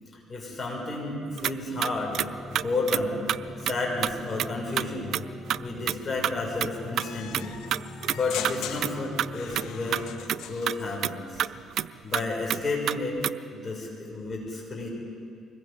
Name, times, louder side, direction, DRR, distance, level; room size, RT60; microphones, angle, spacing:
voice 1, 0.3-2.2 2.5-3.2 3.6-5.1 5.6-7.6 8.1-10.1 10.4-11.4 12.0-13.2 13.5-14.9, left 2 dB, 40° left, -1 dB, 6.4 m, -31 dB
sound 1, 1.4-1.5 1.8-2.3 2.6-3.0 3.3-3.4 3.7-3.8 4.0-4.1 4.4-4.9 5.1-5.2 5.5-5.6 5.9-6.0 6.2-6.4 6.6-6.7 7.0-7.1 7.3-8.2 8.4-8.6 8.8-8.9 9.2-10.0 10.3-10.4 10.7-10.8 11.0-11.1 11.4-11.9 12.1-12.2 12.5-13.3, right 10 dB, 65° right, 0.4 m, -27 dB
sound 2, 1.7-10.2, left 2 dB, 10° left, 5.7 m, -43 dB
sound 3, 7.0-11.0, left 9 dB, 85° left, 1.1 m, -40 dB
24.5 x 21.0 x 5.2 m, 2.4 s
cardioid pair, 90°, 0 cm